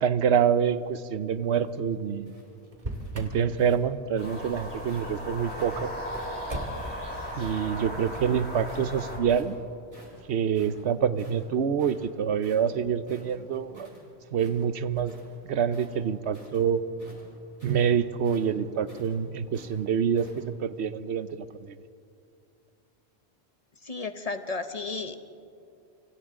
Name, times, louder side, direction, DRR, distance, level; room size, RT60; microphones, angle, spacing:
voice 1, 0.0-2.3 3.1-5.9 7.4-9.6 10.3-13.9 14.3-15.2 15.4-16.8 17.6-21.7, right 7 dB, 85° right, 13 dB, 1.0 m, -26 dB
sound 1, 1.4-5.1 5.5-7.7 8.0-8.9 9.3-9.6 9.9-14.0 14.3-15.4 15.7-20.4, equal, 15° right, 6.6 m, -52 dB
Motor vehicle (road), 2.7-3.4 6.5-7.0, right 1 dB, 45° right, 2.4 m, -35 dB
sound 2, 4.2-9.2, equal, 10° left, 6.0 m, -36 dB
voice 2, 23.8-25.2, left 3 dB, 40° left, 8 dB, 1.0 m, -33 dB
28.0 x 25.5 x 3.7 m, 2.5 s
omnidirectional pair, 1.1 m